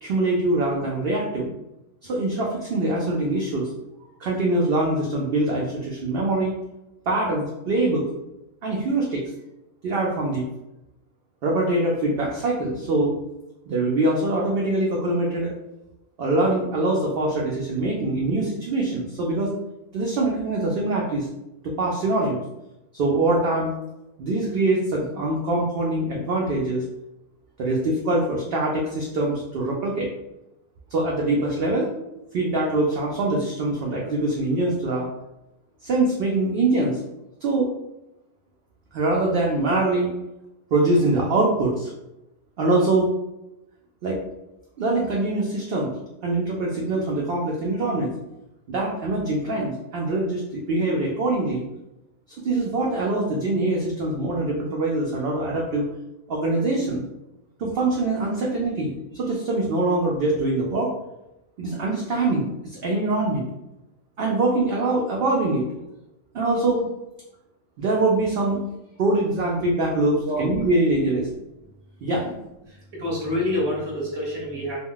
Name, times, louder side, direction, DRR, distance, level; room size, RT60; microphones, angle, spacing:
voice 1, 0.0-1.5 2.0-3.7 4.2-6.5 7.1-8.0 8.6-9.2 9.8-10.4 11.4-13.1 13.7-15.5 16.2-19.5 19.9-21.3 21.6-22.4 22.9-23.7 24.2-26.8 27.6-30.1 30.9-31.9 32.3-35.1 35.8-37.0 37.4-37.7 38.9-40.1 40.7-41.9 42.6-43.1 44.0-44.2 44.8-46.0 46.2-48.1 48.7-51.6 52.4-55.9 56.3-57.0 57.6-60.9 61.6-63.4 64.2-65.6 66.3-66.9 67.8-68.6 69.0-71.3 72.0-72.3, right 2 dB, 65° right, -3 dB, 0.6 m, -23 dB
voice 2, 72.7-74.8, left 1 dB, 25° right, -4 dB, 0.8 m, -27 dB
2.2 x 2.1 x 3.7 m, 0.92 s
omnidirectional pair, 1.3 m